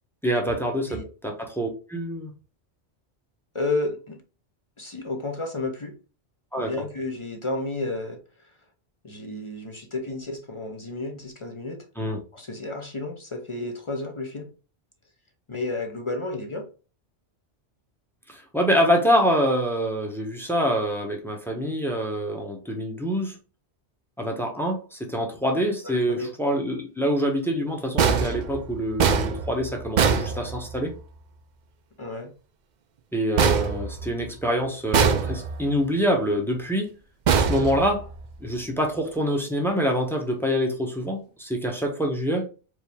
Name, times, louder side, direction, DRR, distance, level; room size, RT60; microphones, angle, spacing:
voice 1, 0.2-2.3 6.5-6.8 12.0-12.2 18.3-23.4 24.2-30.9 33.1-37.0 37.4-38.1 38.4-42.5, equal, ahead, 0.8 m, -25 dB
voice 2, 3.5-4.2 4.8-5.9 6.6-8.2 9.0-11.8 12.3-14.5 15.5-16.6 25.8-26.3 32.0-32.3, left 2 dB, 35° left, 0.6 m, -31 dB
sound 1, 28.0-31.0 33.4-34.5 34.9-35.8 37.3-38.4, right 6 dB, 55° right, 0.5 m, -23 dB
4.6 x 2.7 x 3.4 m
omnidirectional pair, 1.2 m